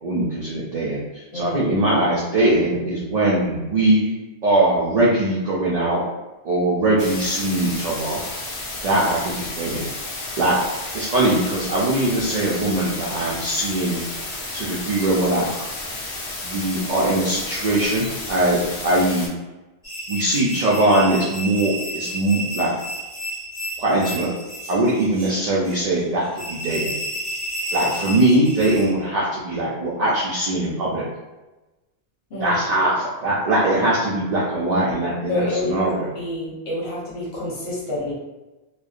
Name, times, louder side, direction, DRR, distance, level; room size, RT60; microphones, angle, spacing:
voice 1, 0.0-4.1 4.4-6.0 6.4-8.2 8.8-9.9 10.4-10.5 10.9-14.0 14.5-15.6 16.4-18.6 18.8-19.3 20.1-22.7 23.8-24.3 24.7-27.0 27.7-31.0 32.4-36.1, right 1 dB, 55° right, -6 dB, 0.5 m, -21 dB
voice 2, 1.3-1.8 32.3-32.6 35.3-38.1, left 2 dB, 70° left, -6 dB, 1.1 m, -28 dB
sound 1, 7.0-19.3, left 2 dB, 50° left, 0.4 m, -32 dB
sound 2, 19.8-28.9, equal, 5° right, 0.6 m, -32 dB
2.6 x 2.1 x 2.4 m, 1.1 s
omnidirectional pair, 1.1 m